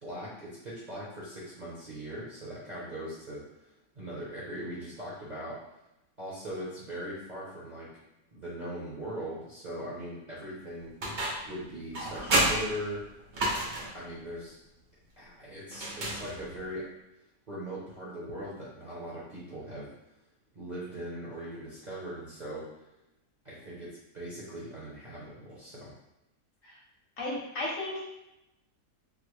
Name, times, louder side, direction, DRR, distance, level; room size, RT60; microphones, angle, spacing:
voice 1, 0.0-5.6 6.2-7.9 8.3-10.9 11.4-13.0 13.9-14.5 15.2-16.8 17.5-19.9 20.5-22.7 23.4-25.9, equal, 40° right, -9 dB, 0.7 m, -40 dB
sound 1, 11.0-11.6 11.9-14.0 15.7-16.7, right 1 dB, 75° right, 0.4 m, -30 dB
voice 2, 27.2-28.1, left 2 dB, 60° left, -4 dB, 1.1 m, -34 dB
3.8 x 2.1 x 3.1 m, 0.90 s
omnidirectional pair, 1.7 m